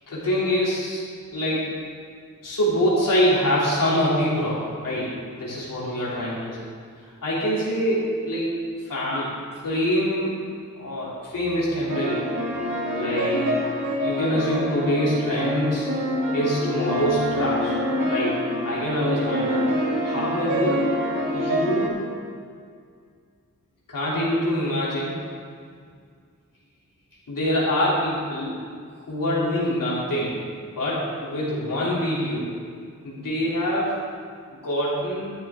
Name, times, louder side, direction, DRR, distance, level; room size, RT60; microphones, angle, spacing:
voice 1, 0.1-1.0 1.3-1.7 2.4-6.6 7.2-8.6 8.8-9.3 9.6-10.4 10.8-12.2 12.9-13.5 14.0-15.9 16.3-17.7 18.1-19.6 20.0-20.9 21.3-22.0 23.9-25.2 27.3-28.6 29.1-30.3 30.8-32.5 33.0-34.0 34.5-35.3, equal, 85° left, -7 dB, 3.3 m, -25 dB
sound 1, 11.9-21.9, equal, 80° right, 2.1 m, -26 dB
13.0 x 10.5 x 3.8 m, 2.1 s
wide cardioid pair, 125°, 32 cm